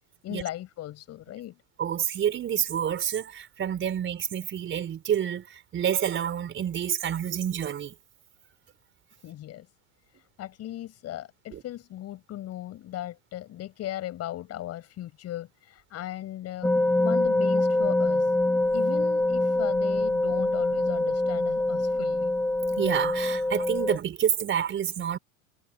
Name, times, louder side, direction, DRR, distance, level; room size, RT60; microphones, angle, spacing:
voice 1, 0.2-1.6 9.2-9.7 10.4-16.7 17.0-18.3 18.7-22.3, left 13 dB, 35° left, 7.3 m, -37 dB
voice 2, 1.8-7.9 11.5-11.6 22.8-25.2, right 9 dB, 30° right, 4.7 m, -28 dB
sound 1, 16.6-24.0, left 2 dB, 5° left, 1.2 m, -25 dB
hypercardioid pair, 115°, 42 cm